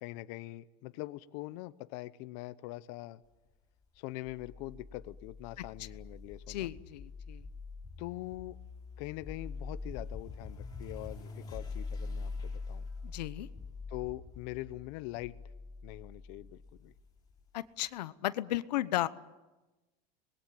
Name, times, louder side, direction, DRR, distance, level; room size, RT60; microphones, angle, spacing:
voice 1, 0.0-3.2 4.0-6.7 8.0-8.6 9.0-12.9 13.9-15.4 15.8-16.9, left 18 dB, 55° left, 14 dB, 0.8 m, -43 dB
sound 1, 4.2-17.4, left 4 dB, 20° left, 4.3 m, -44 dB
voice 2, 6.5-7.4 13.0-13.5 17.5-19.1, left 15 dB, 90° left, 15 dB, 1.0 m, -34 dB
25.0 x 21.0 x 8.8 m, 1.1 s
supercardioid pair, 145°, 21 cm